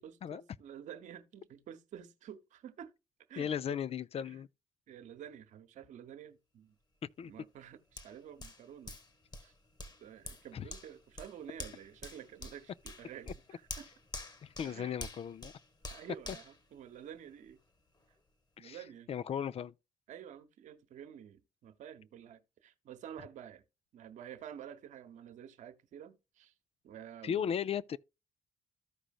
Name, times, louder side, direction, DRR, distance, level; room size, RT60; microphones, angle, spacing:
voice 1, 0.0-2.9 3.3-3.8 4.2-4.4 4.9-6.7 7.2-9.0 9.4-9.5 10.0-13.9 14.6-15.0 15.9-17.6 18.6-19.1 20.1-23.6 23.9-26.5 26.8-27.6, right 9 dB, 65° right, 1.1 m, -50 dB
voice 2, 3.4-4.5 7.2-7.3 10.5-10.6 14.4-15.5 18.6-18.8 19.1-19.7 27.2-28.0, left 8 dB, 50° left, 0.5 m, -36 dB
Hands, 8.0-17.5 17.9-18.1, left 2 dB, 30° left, 1.6 m, -48 dB
14.0 x 4.9 x 2.4 m
hypercardioid pair, 50°, 13 cm